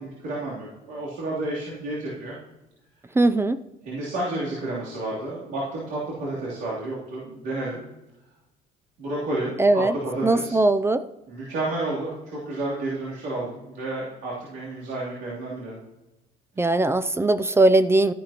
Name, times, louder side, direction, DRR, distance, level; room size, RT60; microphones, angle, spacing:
voice 1, 0.0-2.4 3.8-7.8 9.0-10.6 11.3-15.8 16.6-16.7, right 2 dB, 85° right, -8 dB, 3.1 m, -31 dB
voice 2, 3.2-3.6 9.6-9.9 10.2-11.1 16.6-18.1, right 2 dB, 15° right, 13 dB, 0.4 m, -20 dB
13.5 x 10.5 x 2.9 m, 1.0 s
cardioid pair, 110°, 17 cm